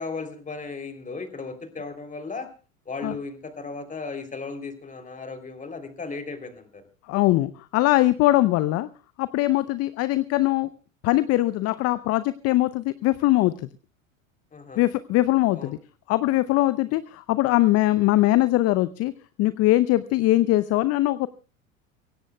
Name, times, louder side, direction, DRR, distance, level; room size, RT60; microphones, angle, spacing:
voice 1, 0.0-2.5 2.8-6.8 8.3-8.4 9.6-9.8 14.5-14.8 15.5-15.8 16.8-17.0, left 4 dB, 20° left, 7 dB, 3.3 m, -36 dB
voice 2, 7.1-8.9 9.2-10.7 11.0-13.5 14.8-15.8 16.1-19.1 19.4-21.3, left 17 dB, 40° left, 16 dB, 0.7 m, -21 dB
24.0 x 17.0 x 2.3 m, 0.35 s
hypercardioid pair, 85°, 40 cm